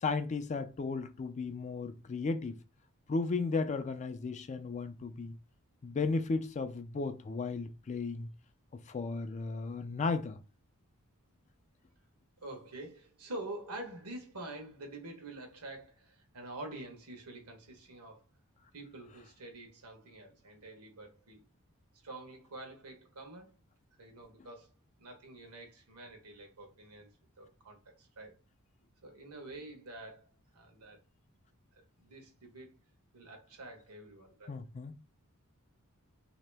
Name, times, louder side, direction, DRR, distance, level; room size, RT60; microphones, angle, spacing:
voice 1, 0.0-2.6 3.1-5.3 5.8-8.3 8.7-10.4 34.5-35.0, left 4 dB, 30° left, 0.3 m, -35 dB
voice 2, 12.4-18.3 18.7-21.4 22.0-23.5 24.0-24.7 25.0-28.4 29.0-31.0 31.7-32.7 33.1-34.6, right 2 dB, 80° right, 1.1 m, -47 dB
3.0 x 2.8 x 3.3 m
head